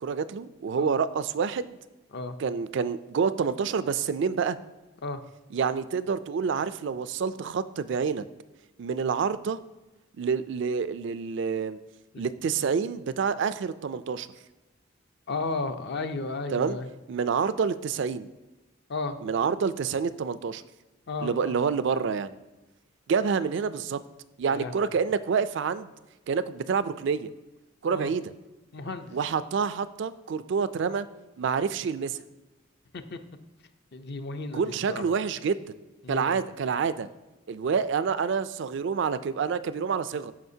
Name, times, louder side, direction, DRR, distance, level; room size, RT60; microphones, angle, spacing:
voice 1, 0.0-1.8 2.4-4.6 5.5-8.2 8.8-9.6 10.2-11.8 12.2-14.3 16.5-16.8 17.1-18.3 19.2-20.6 21.2-22.3 23.1-24.0 24.4-25.9 26.3-27.3 27.8-28.3 29.1-31.1 31.4-32.2 34.5-35.6 36.1-37.1 37.5-40.3, right 6 dB, 60° right, 14 dB, 0.3 m, -28 dB
voice 2, 15.3-16.9 18.9-19.2 21.1-21.6 24.5-24.9 27.9-28.1 28.7-29.2 32.9-33.2 33.9-35.0 36.0-36.4, left 3 dB, 55° left, 8 dB, 0.6 m, -34 dB
13.5 x 5.0 x 2.7 m, 1.1 s
head